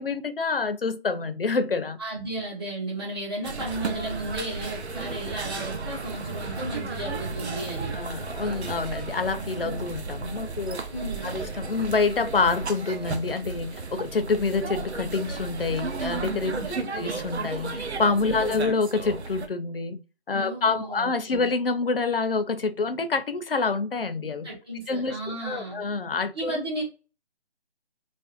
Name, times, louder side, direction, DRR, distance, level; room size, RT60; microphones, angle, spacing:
voice 1, 0.0-2.0 7.9-10.8 11.2-20.0 20.3-24.5 24.9-25.2 25.4-26.6, left 4 dB, 60° left, 0.5 m, -27 dB
voice 2, 2.0-7.9 10.9-11.4 16.5-16.9 18.3-18.4 20.3-21.5 24.4-25.8 26.3-26.8, right 1 dB, 25° right, 1.0 m, -34 dB
sound 1, 3.4-19.5, right 4 dB, 85° right, 0.7 m, -34 dB
3.3 x 2.5 x 2.4 m
figure-of-eight pair, 175°, 32 cm